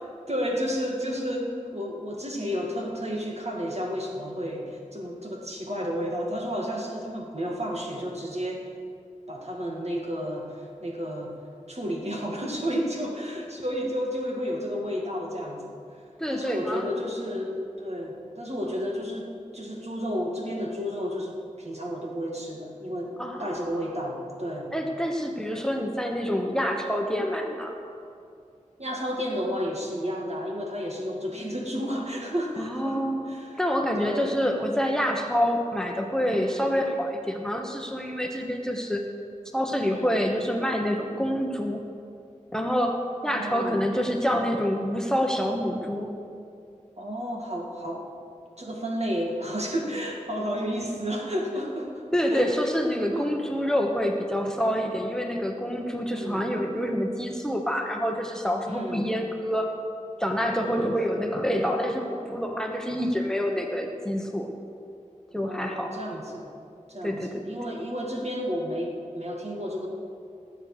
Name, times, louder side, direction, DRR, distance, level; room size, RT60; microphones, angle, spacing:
voice 1, 0.3-8.7 9.3-11.3 11.7-15.8 16.3-23.1 23.4-24.7 28.8-33.6 34.0-34.3 36.3-36.6 39.9-40.2 43.2-43.8 47.0-48.1 48.6-52.0 52.3-52.5 53.1-53.3 56.1-56.5 58.7-59.1 60.6-61.0 65.5-66.5 66.9-69.9, equal, 55° right, -1 dB, 2.1 m, -32 dB
voice 2, 16.2-16.9 23.2-23.7 24.7-27.8 32.6-33.3 33.6-39.0 39.5-41.8 42.5-46.1 52.1-59.7 60.2-64.5 65.3-66.0 67.0-67.4, equal, 5° left, 2 dB, 1.2 m, -27 dB
19.0 x 8.1 x 5.0 m, 2.5 s
wide cardioid pair, 40°, 13 cm